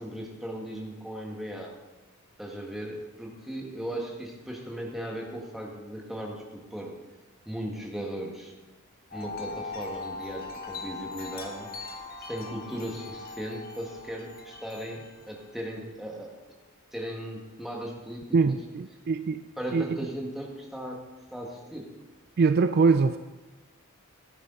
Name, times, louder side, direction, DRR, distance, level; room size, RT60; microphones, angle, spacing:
voice 1, 0.0-1.7 2.4-6.9 7.5-8.5 9.1-11.7 12.3-16.4 16.9-18.6 19.6-21.0 21.3-21.9, equal, ahead, -1 dB, 1.8 m, -37 dB
Wind chime, 9.1-15.6, left 3 dB, 45° left, 1.5 m, -40 dB
voice 2, 18.3-19.4 19.7-20.0 22.4-23.2, right 4 dB, 45° right, 11 dB, 0.4 m, -23 dB
13.0 x 10.5 x 4.0 m, 1.2 s
head